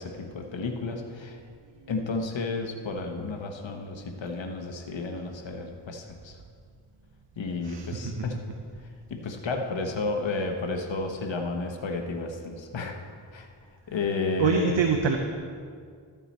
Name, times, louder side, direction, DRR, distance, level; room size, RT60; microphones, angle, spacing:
voice 1, 0.0-1.4 1.9-6.4 7.4-8.4 8.8-13.0 13.3-13.5 13.9-14.9, left 3 dB, 80° left, 3 dB, 1.0 m, -32 dB
voice 2, 7.6-8.3 14.4-15.2, right 6 dB, 75° right, 4 dB, 0.8 m, -25 dB
13.0 x 8.9 x 4.3 m, 2.1 s
cardioid pair, 45°, 44 cm